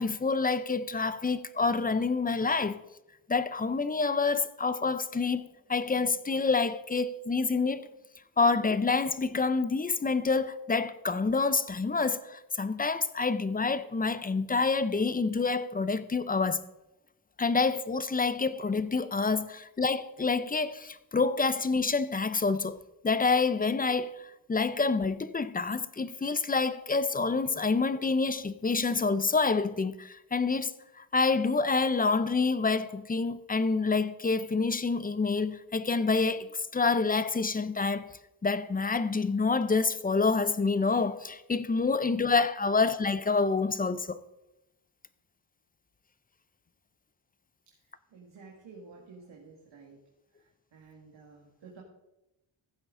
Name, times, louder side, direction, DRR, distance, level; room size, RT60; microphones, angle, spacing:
voice 1, 0.0-2.8 3.3-7.9 8.4-16.6 17.4-22.8 23.0-30.7 31.0-38.1 38.4-44.2, left 4 dB, 20° left, 0.4 m, -27 dB
voice 2, 47.7-50.0 50.3-51.8, right 4 dB, 65° right, 2.0 m, -52 dB
15.0 x 7.6 x 3.7 m
wide cardioid pair, 105°, 48 cm